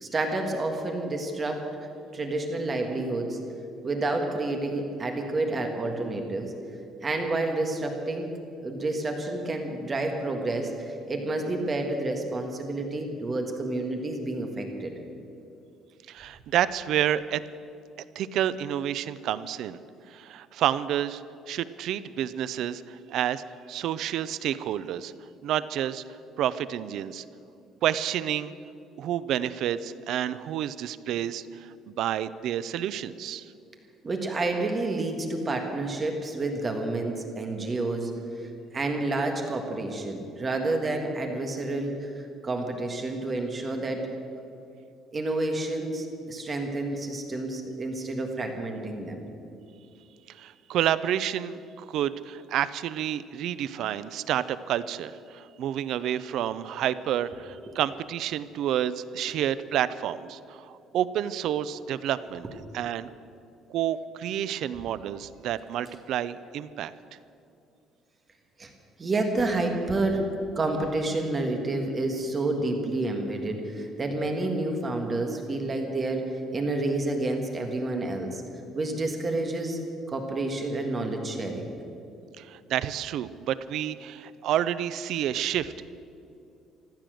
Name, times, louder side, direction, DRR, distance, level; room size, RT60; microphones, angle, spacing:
voice 1, 0.0-1.6 2.1-3.4 3.8-6.5 7.0-8.3 8.6-14.9 34.0-38.1 38.4-44.1 45.1-49.2 68.6-68.7 69.0-70.3 70.5-78.4 78.7-79.8 80.1-81.7, right 2 dB, 20° right, 3 dB, 1.6 m, -29 dB
voice 2, 16.1-17.4 18.2-19.8 20.1-21.2 21.5-23.4 23.7-25.1 25.4-26.0 26.4-27.2 27.8-28.5 29.0-33.5 50.3-62.5 62.7-63.1 63.7-66.9 82.4-85.9, right 11 dB, 55° right, 15 dB, 0.5 m, -29 dB
15.0 x 12.0 x 7.7 m, 2.6 s
cardioid pair, 170°, 0 cm